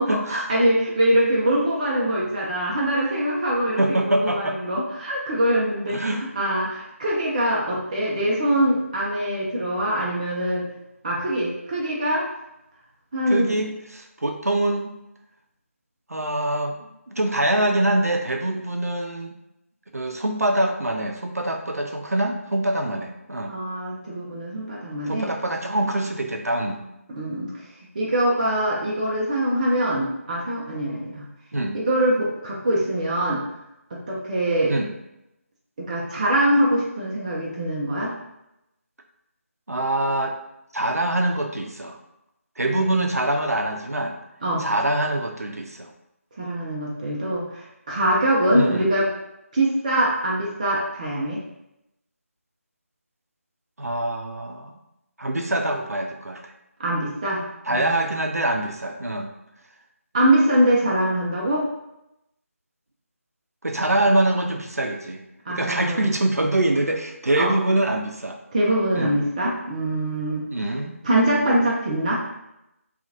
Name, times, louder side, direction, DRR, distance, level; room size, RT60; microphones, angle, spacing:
voice 1, 0.0-6.0 6.4-10.7 11.0-12.2 13.1-13.6 23.4-25.3 27.1-27.5 27.9-31.2 31.7-33.4 33.9-34.8 35.8-38.1 42.7-43.1 44.4-44.7 46.4-49.1 49.5-51.4 56.8-57.4 57.7-58.1 60.1-61.6 65.5-66.1 67.4-67.5 68.5-70.5 71.0-72.2, right 1 dB, 30° right, -5 dB, 0.5 m, -23 dB
voice 2, 3.8-4.6 5.9-6.2 13.3-14.9 16.1-19.4 19.9-23.5 25.1-26.8 31.5-31.8 34.7-34.9 39.7-40.3 40.7-42.0 42.6-44.2 44.6-45.9 48.5-48.9 53.8-54.8 55.2-56.5 57.6-59.3 63.6-65.2 65.5-68.4 68.9-69.2 70.5-70.9, right 1 dB, 85° right, 4 dB, 0.5 m, -24 dB
2.7 x 2.4 x 2.5 m, 0.86 s
figure-of-eight pair, 160°, 8 cm